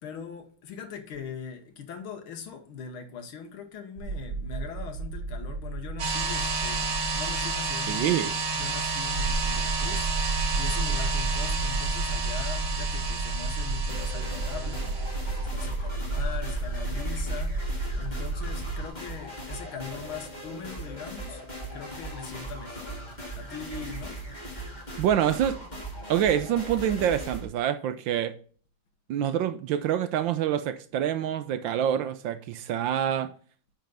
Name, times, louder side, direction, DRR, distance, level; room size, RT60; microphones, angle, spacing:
voice 1, 0.0-17.7 18.0-21.5 21.7-23.0 23.4-24.2, left 6 dB, 85° left, 2.1 m, -41 dB
sound 1, 4.0-18.9, right 3 dB, 90° right, 0.6 m, -32 dB
sound 2, 6.0-15.4, right 4 dB, 55° right, 1.8 m, -31 dB
voice 2, 7.9-8.3 25.0-25.6 26.1-28.3 29.1-33.3, right 10 dB, 75° right, 1.3 m, -26 dB
sound 3, 13.9-27.5, right 1 dB, 20° left, 2.0 m, -39 dB
9.2 x 4.3 x 4.0 m
omnidirectional pair, 2.3 m